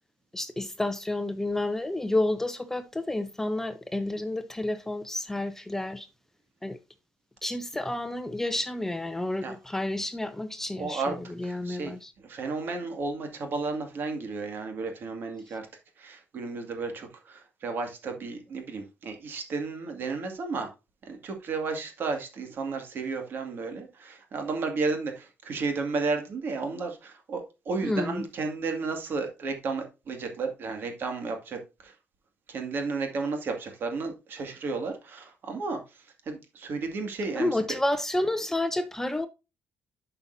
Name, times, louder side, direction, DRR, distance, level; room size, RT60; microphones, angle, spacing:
voice 1, 0.3-6.1 6.6-6.8 7.4-12.1 27.8-28.3 37.4-39.3, left 1 dB, 10° left, 0.5 m, -30 dB
voice 2, 10.8-11.1 11.4-15.6 16.0-20.7 21.0-31.9 32.5-35.8 36.3-37.5, right 4 dB, 55° right, 2.1 m, -33 dB
11.0 x 5.6 x 2.7 m
cardioid pair, 135°, 4 cm